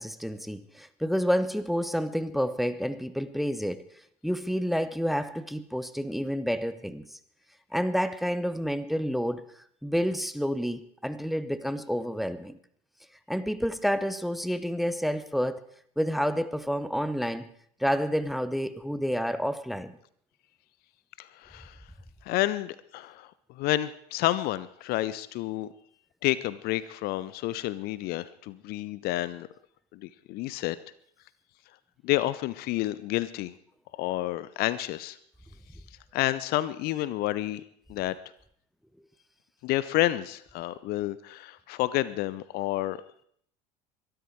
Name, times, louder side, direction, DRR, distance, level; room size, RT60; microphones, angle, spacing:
voice 1, 0.0-3.8 4.2-7.2 7.7-9.4 9.8-12.6 13.3-15.6 16.0-17.5 17.8-19.9, equal, ahead, 1.0 m, -29 dB
voice 2, 21.2-21.8 22.2-25.7 26.2-29.5 29.9-30.8 32.0-33.5 33.9-35.2 36.1-37.6 37.9-38.2 39.6-43.0, left 16 dB, 50° left, 0.8 m, -30 dB
23.0 x 12.5 x 4.7 m
figure-of-eight pair, 70°, 21 cm